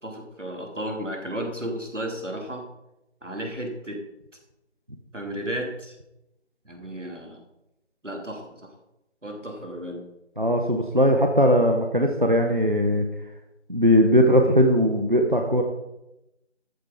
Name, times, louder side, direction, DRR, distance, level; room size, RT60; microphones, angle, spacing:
voice 1, 0.0-2.7 3.2-4.0 5.1-6.0 6.6-7.4 8.0-8.7 9.2-10.0, right 1 dB, 90° right, 2 dB, 3.0 m, -33 dB
voice 2, 10.4-13.1 13.7-15.6, equal, 45° right, 3 dB, 1.1 m, -19 dB
13.5 x 7.6 x 5.2 m, 0.90 s
figure-of-eight pair, 180°, 36 cm